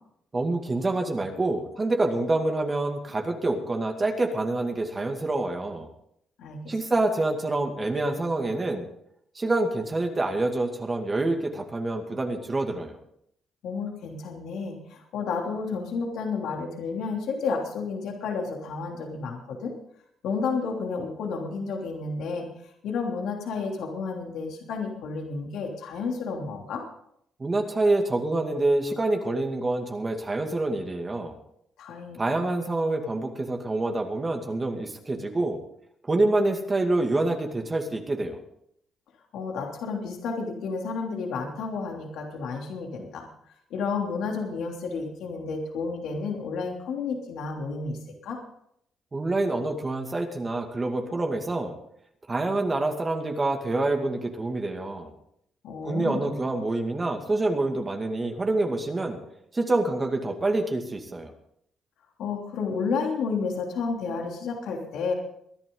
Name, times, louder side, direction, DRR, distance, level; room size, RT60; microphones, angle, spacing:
voice 1, 0.3-5.9 6.7-8.9 9.4-13.0 27.4-31.3 32.2-35.6 36.1-38.4 49.1-51.7 52.3-55.1 55.8-59.2 59.5-61.3, right 2 dB, 25° right, 3 dB, 2.3 m, -26 dB
voice 2, 6.4-6.7 13.6-19.7 20.2-26.8 31.8-32.3 39.3-43.3 43.7-48.4 55.6-56.4 62.2-65.1, left 4 dB, 80° left, 1 dB, 3.1 m, -31 dB
22.5 x 11.0 x 3.9 m, 0.72 s
cardioid pair, 90°, 0 cm